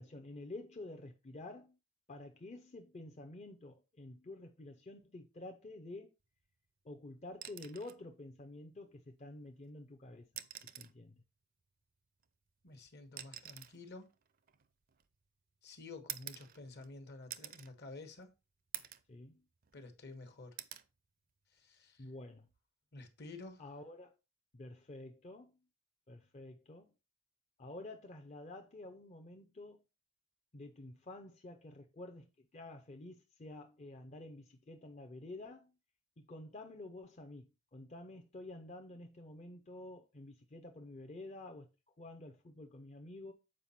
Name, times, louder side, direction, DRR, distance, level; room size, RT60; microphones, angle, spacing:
voice 1, 0.0-1.8 2.1-6.1 6.8-10.3 10.6-11.2 19.1-19.4 22.0-22.5 23.6-24.2 24.5-25.5 26.1-26.9 27.6-29.8 30.5-35.7 36.2-41.7 42.0-43.3, left 2 dB, 35° left, 0.6 m, -50 dB
sound 1, 7.3-8.0 9.5-9.6 10.2-11.0 12.2-15.3 16.1-16.9 17.3-17.7 18.2-18.3 18.7-19.1 19.5-20.2 20.6-20.9 22.4-22.6, right 11 dB, 45° right, 0.5 m, -48 dB
voice 2, 12.6-14.1 15.6-18.3 19.7-20.6 21.5-22.0 22.9-23.6, left 3 dB, 55° left, 1.2 m, -51 dB
7.5 x 4.9 x 4.2 m
head